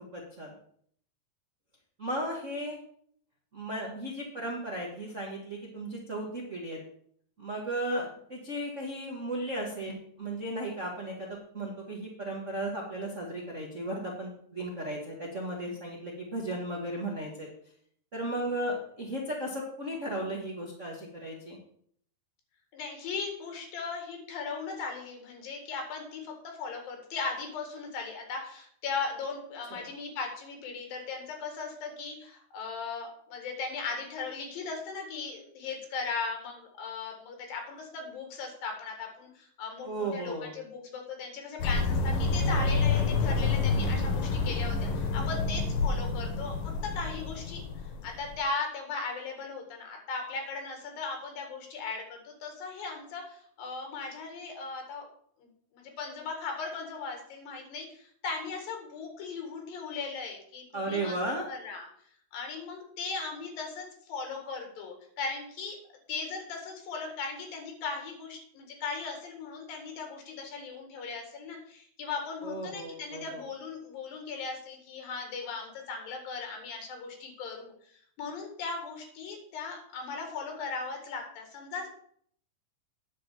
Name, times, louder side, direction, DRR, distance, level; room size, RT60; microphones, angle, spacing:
voice 1, 0.1-0.5 2.0-2.8 3.5-6.8 7.4-17.5 18.1-21.6 29.7-29.8 39.8-40.5 60.7-61.4 72.4-73.4, right 1 dB, 55° right, -2 dB, 0.8 m, -35 dB
voice 2, 22.7-46.6 46.9-47.6 48.0-55.1 55.4-61.2 61.5-61.9 62.3-65.8 66.1-77.7 78.2-81.9, left 4 dB, 90° left, 3 dB, 3.6 m, -38 dB
sound 1, 41.6-48.4, left 3 dB, 75° left, 2.6 m, -28 dB
9.6 x 4.3 x 7.2 m, 0.63 s
omnidirectional pair, 3.9 m